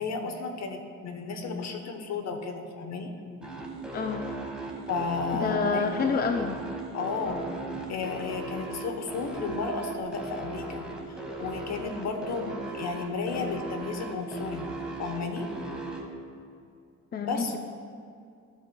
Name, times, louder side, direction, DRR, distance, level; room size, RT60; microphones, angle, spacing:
voice 1, 0.0-3.1 4.9-5.8 6.9-7.5 7.9-14.7 15.0-15.5 17.2-17.6, left 4 dB, 60° left, 5 dB, 1.0 m, -33 dB
sound 1, 3.4-16.0, right 2 dB, 5° right, 1.4 m, -37 dB
voice 2, 3.9-4.2 5.3-6.6 17.1-17.6, left 5 dB, 30° left, 5 dB, 0.5 m, -28 dB
15.5 x 5.4 x 2.3 m, 2.3 s
cardioid pair, 90°, 30 cm